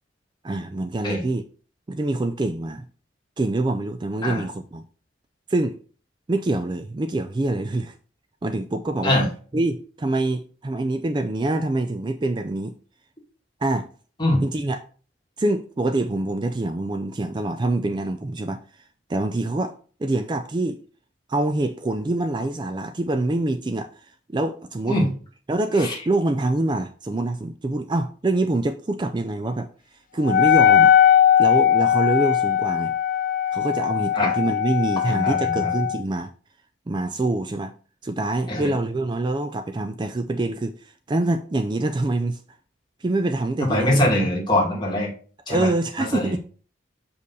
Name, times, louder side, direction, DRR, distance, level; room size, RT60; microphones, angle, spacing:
voice 1, 0.4-1.4 1.9-2.9 3.4-4.8 5.5-5.8 6.3-7.9 8.4-9.1 9.5-12.8 13.6-13.9 14.4-14.8 15.4-18.8 19.1-19.7 20.0-20.8 21.3-25.0 25.5-29.7 30.1-30.9 31.4-32.9 33.5-36.3 36.9-37.7 38.0-42.4 43.0-44.3 45.5-46.4, right 2 dB, 25° right, 0.4 m, -25 dB
Wind instrument woodwind instrument, 30.2-36.0, left 9 dB, 45° left, 0.4 m, -19 dB
voice 2, 35.1-35.7 38.5-38.7 43.6-45.1 45.5-45.7 46.1-46.4, left 1 dB, 25° left, 2.2 m, -22 dB
6.6 x 5.3 x 4.1 m
head